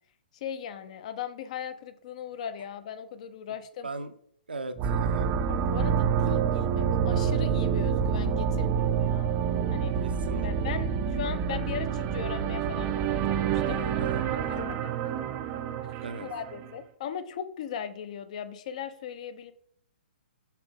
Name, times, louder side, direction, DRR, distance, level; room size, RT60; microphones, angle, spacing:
voice 1, 0.3-3.9 5.5-9.3 9.7-9.9 10.4-13.8 14.5-14.9 16.2-19.5, left 8 dB, 45° left, 10 dB, 0.7 m, -38 dB
voice 2, 3.8-4.1 4.5-5.3 10.0-10.8 13.6-14.7 16.0-16.3, right 3 dB, 70° right, 9 dB, 0.7 m, -39 dB
sound 1, 4.8-16.7, right 7 dB, 25° right, 0.5 m, -27 dB
5.9 x 5.8 x 3.6 m, 0.63 s
figure-of-eight pair, 120°, 5 cm